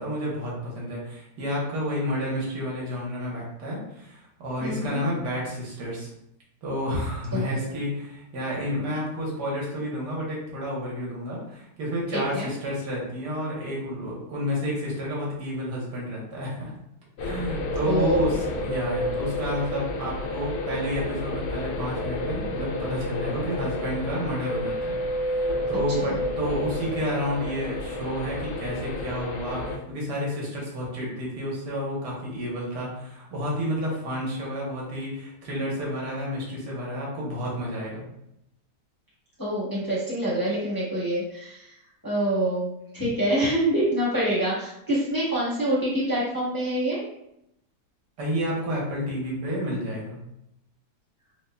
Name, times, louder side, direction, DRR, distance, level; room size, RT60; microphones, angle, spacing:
voice 1, 0.0-6.1 6.6-16.7 17.2-25.0 25.3-38.1 48.2-50.2, equal, 85° right, -4 dB, 1.7 m, -30 dB
voice 2, 4.6-5.0 7.3-7.8 12.1-12.5 17.9-18.3 39.4-41.7 42.0-47.0, right 1 dB, 15° left, -9 dB, 1.0 m, -26 dB
sound 1, 17.2-29.8, left 1 dB, 80° left, 1.1 m, -30 dB
4.6 x 2.9 x 2.2 m, 0.81 s
omnidirectional pair, 1.8 m